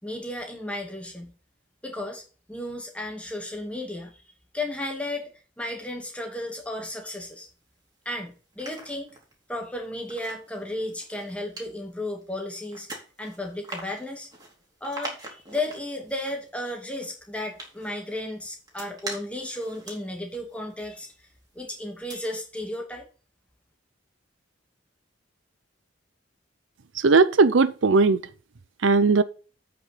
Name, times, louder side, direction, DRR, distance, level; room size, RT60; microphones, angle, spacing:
voice 1, 0.0-1.3 1.8-2.2 2.5-4.2 4.5-7.5 8.1-9.1 9.5-12.9 13.2-14.3 14.8-21.1 21.5-23.1, left 1 dB, 5° left, 2.4 m, -34 dB
sound 1, 7.1-8.0 8.4-21.6 21.9-22.1, right 2 dB, 20° right, 3.1 m, -44 dB
voice 2, 27.0-28.2 28.8-29.2, right 4 dB, 75° right, 0.6 m, -18 dB
8.4 x 5.9 x 5.7 m
head